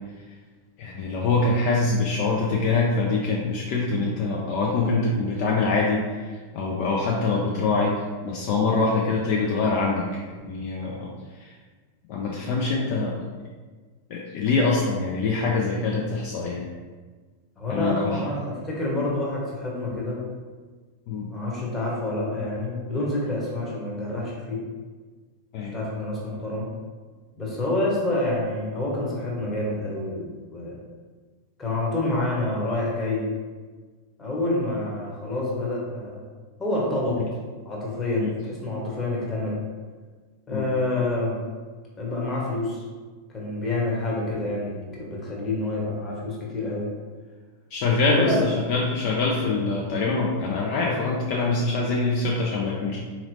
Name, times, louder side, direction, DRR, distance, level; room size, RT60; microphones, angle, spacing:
voice 1, 0.8-6.0 6.5-7.9 8.2-10.0 10.4-11.1 12.1-13.1 14.1-16.6 17.7-18.2 21.1-21.3 25.5-25.7 38.1-38.3 40.5-40.7 47.7-53.0, left 3 dB, 45° left, -3 dB, 0.4 m, -24 dB
voice 2, 17.6-20.2 21.3-24.6 25.7-26.7 27.4-30.8 31.6-33.3 34.2-36.2 36.6-37.2 37.6-39.6 40.5-41.4 42.0-42.8 43.3-46.9 48.1-48.5, left 2 dB, 15° left, -4 dB, 1.1 m, -27 dB
3.9 x 2.9 x 2.7 m, 1.4 s
figure-of-eight pair, 90°, 0 cm